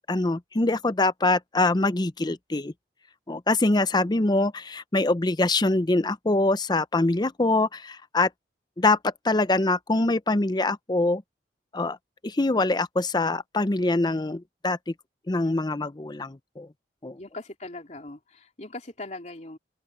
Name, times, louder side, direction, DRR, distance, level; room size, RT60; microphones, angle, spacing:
voice 1, 0.1-2.7 3.3-8.3 8.8-11.2 11.7-12.0 12.2-14.9 15.3-16.7 17.0-17.2, left 2 dB, 25° left, 0.6 m, -24 dB
voice 2, 17.2-19.6, left 2 dB, 40° left, 3.1 m, -40 dB
open air
head